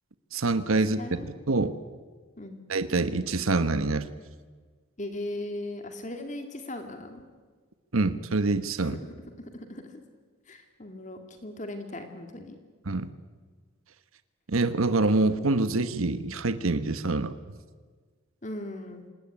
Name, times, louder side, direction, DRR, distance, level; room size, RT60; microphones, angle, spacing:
voice 1, 0.3-1.2 1.5-1.7 2.7-4.1 7.9-9.0 12.9-13.1 14.5-17.4, right 3 dB, 85° right, 11 dB, 1.2 m, -25 dB
voice 2, 0.9-1.3 2.4-2.6 5.0-7.3 8.8-9.0 9.4-10.0 10.5-12.6 18.4-19.0, left 1 dB, 35° left, 6 dB, 2.3 m, -38 dB
26.5 x 19.0 x 10.0 m, 1.5 s
head